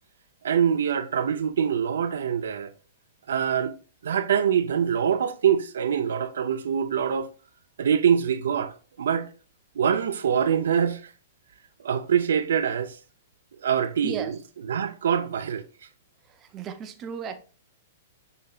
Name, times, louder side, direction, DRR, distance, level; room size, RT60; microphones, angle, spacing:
voice 1, 0.4-2.7 3.3-3.7 4.0-7.3 7.8-9.3 9.8-11.1 11.8-13.0 13.6-14.4 14.7-15.6, right 8 dB, 80° right, 0.4 m, -24 dB
voice 2, 16.3-17.5, right 7 dB, 25° right, 0.5 m, -35 dB
6.6 x 2.7 x 2.3 m
hypercardioid pair, 145°, 0 cm